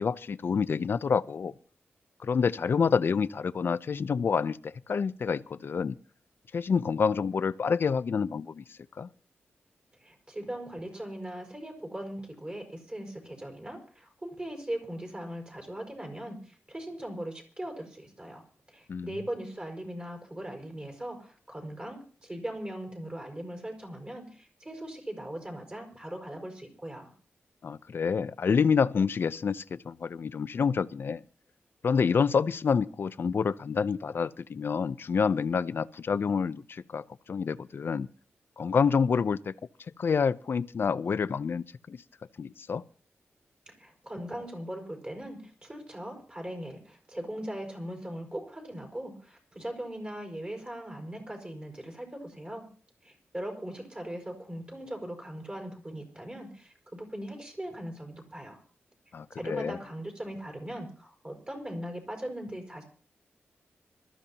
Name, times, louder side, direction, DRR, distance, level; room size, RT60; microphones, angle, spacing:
voice 1, 0.0-1.5 2.2-6.0 6.5-8.6 9.0-9.1 18.9-19.2 27.6-31.2 31.8-38.1 38.6-39.5 40.0-42.0 42.4-42.8 59.1-59.8, left 6 dB, 60° left, 0.6 m, -28 dB
voice 2, 10.0-18.4 18.7-27.1 43.7-52.7 53.0-58.6 59.4-62.8, right 1 dB, 25° right, 5.6 m, -39 dB
26.0 x 13.5 x 2.9 m
wide cardioid pair, 100°, 4 cm